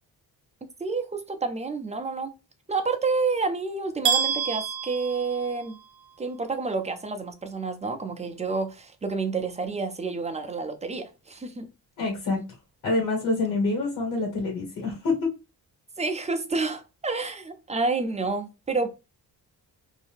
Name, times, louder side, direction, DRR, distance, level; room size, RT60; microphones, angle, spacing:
voice 1, 0.8-2.3 2.7-5.8 6.2-11.7 12.3-12.4 16.0-18.9, right 4 dB, 20° right, 0.4 m, -29 dB
sound 1, 4.0-6.0, right 7 dB, 50° right, 0.8 m, -28 dB
voice 2, 12.0-12.4 12.8-15.3, left 3 dB, 50° left, 1.5 m, -26 dB
2.7 x 2.6 x 3.4 m
cardioid pair, 125°, 37 cm